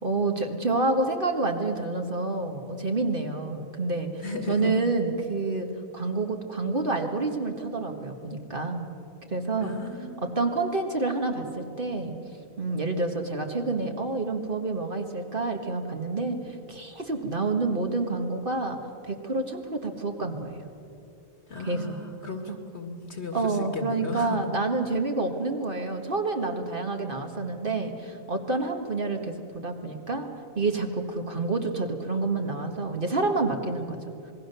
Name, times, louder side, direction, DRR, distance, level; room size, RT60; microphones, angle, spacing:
voice 1, 0.0-5.7 5.9-8.8 9.3-9.7 10.2-12.1 12.6-18.8 19.0-20.6 21.6-22.0 22.5-22.6 23.3-30.3 30.5-34.0, right 3 dB, 40° right, 3 dB, 1.8 m, -28 dB
voice 2, 4.2-4.8 9.6-10.3 21.5-24.4, left 3 dB, 50° left, 5 dB, 2.3 m, -35 dB
27.0 x 20.5 x 6.8 m, 2.7 s
omnidirectional pair, 1.4 m